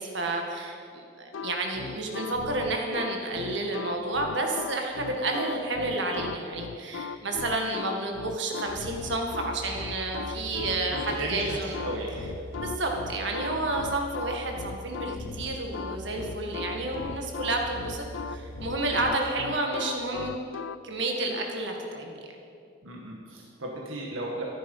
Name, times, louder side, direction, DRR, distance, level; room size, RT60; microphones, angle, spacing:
voice 1, 0.0-11.8 12.6-20.3 20.8-22.2, right 2 dB, 60° right, 1 dB, 1.9 m, -30 dB
sound 1, 1.3-20.8, left 6 dB, 75° left, 0.4 m, -38 dB
sound 2, 8.6-19.0, right 1 dB, 30° right, 4.2 m, -42 dB
voice 2, 10.9-12.2 22.8-24.4, right 1 dB, 90° right, -2 dB, 1.7 m, -35 dB
14.0 x 11.5 x 5.6 m, 2.5 s
head